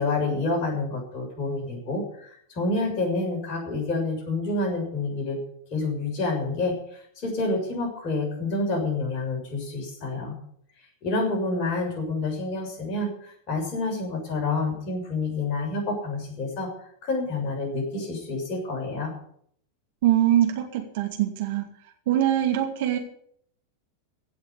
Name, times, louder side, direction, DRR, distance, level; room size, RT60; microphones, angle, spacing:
voice 1, 0.0-5.4 5.7-10.4 11.0-16.7 17.0-19.1, left 3 dB, 35° left, 0 dB, 6.6 m, -28 dB
voice 2, 20.0-21.6 22.1-23.0, right 12 dB, 50° right, 3 dB, 2.6 m, -23 dB
16.5 x 6.4 x 9.5 m, 0.65 s
figure-of-eight pair, 90°, 0 cm